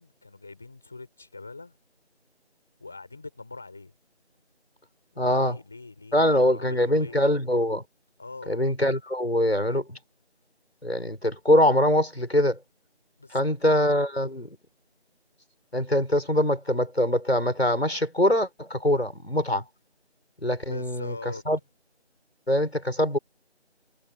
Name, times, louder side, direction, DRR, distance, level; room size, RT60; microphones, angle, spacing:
voice 1, 0.0-1.7 2.8-3.9 5.1-7.2 8.2-8.6 13.2-13.7 20.7-21.4, left 3 dB, ahead, 5.2 m, -42 dB
voice 2, 5.2-5.6 6.1-7.8 8.5-10.0 10.8-12.6 13.3-14.6 15.7-19.6 20.4-21.1 21.5-21.6 22.5-23.2, left 1 dB, 65° left, 6.9 m, -23 dB
figure-of-eight pair, 175°, 34 cm